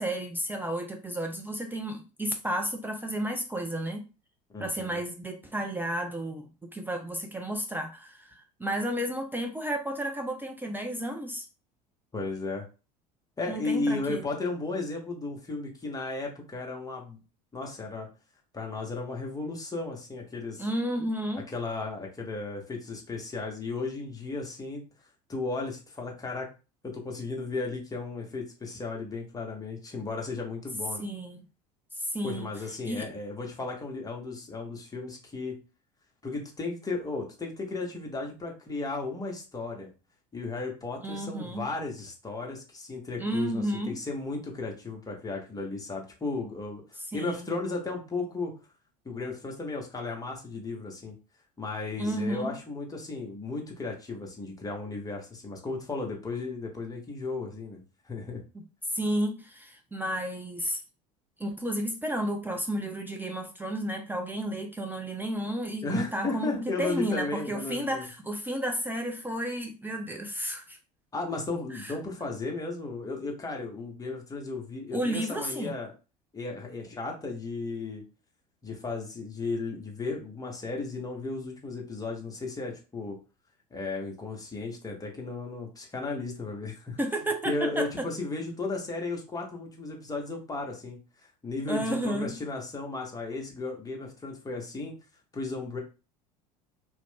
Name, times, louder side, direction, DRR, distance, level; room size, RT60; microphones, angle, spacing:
voice 1, 0.0-4.1 4.6-6.5 6.7-11.4 13.5-14.3 20.6-21.4 31.0-31.4 31.9-32.5 32.8-33.1 41.0-41.7 43.2-44.0 47.1-47.5 52.0-52.6 58.5-58.6 58.9-60.8 61.4-70.8 71.7-71.9 74.9-75.8 87.0-88.1 91.7-92.4, right 1 dB, 10° right, 0.4 m, -32 dB
voice 2, 4.5-5.0 12.1-12.7 13.4-17.2 17.5-18.1 18.5-20.6 21.5-24.8 25.3-26.5 26.8-31.0 32.2-35.6 36.2-39.9 40.3-46.8 47.1-48.5 49.0-51.1 51.6-58.4 65.8-68.0 71.1-75.9 76.3-78.0 78.6-83.2 83.7-87.0 87.4-91.0 91.4-94.9 95.3-95.8, left 3 dB, 15° left, 0.9 m, -35 dB
2.4 x 2.1 x 3.4 m
hypercardioid pair, 70°, 21 cm